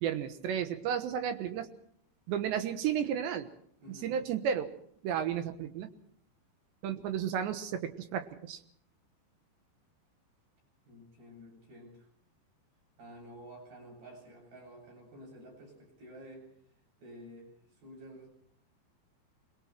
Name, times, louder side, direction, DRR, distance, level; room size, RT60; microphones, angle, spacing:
voice 1, 0.0-1.7 2.3-3.5 3.9-4.7 5.0-5.9 6.8-8.6, right 8 dB, 80° right, 9 dB, 3.5 m, -33 dB
voice 2, 3.8-4.2 10.9-12.1 13.0-16.5 17.0-17.5 17.8-18.3, equal, 55° right, -1 dB, 9.9 m, -51 dB
26.0 x 22.0 x 4.6 m, 0.64 s
omnidirectional pair, 5.1 m